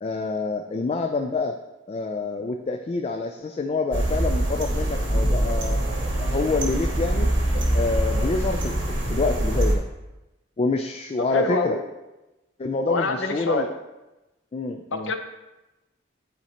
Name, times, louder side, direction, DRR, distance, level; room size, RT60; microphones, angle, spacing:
voice 1, 0.0-1.6 1.9-5.8 6.1-8.8 9.1-9.8 10.6-11.8 12.6-13.7 14.5-15.1, left 3 dB, 30° left, 5 dB, 0.3 m, -27 dB
sound 1, 3.9-9.8, right 1 dB, 70° right, 1.5 m, -24 dB
voice 2, 11.2-11.8 12.9-13.7 14.9-15.1, left 3 dB, 85° left, 6 dB, 0.8 m, -26 dB
11.5 x 4.4 x 2.9 m, 1.0 s
head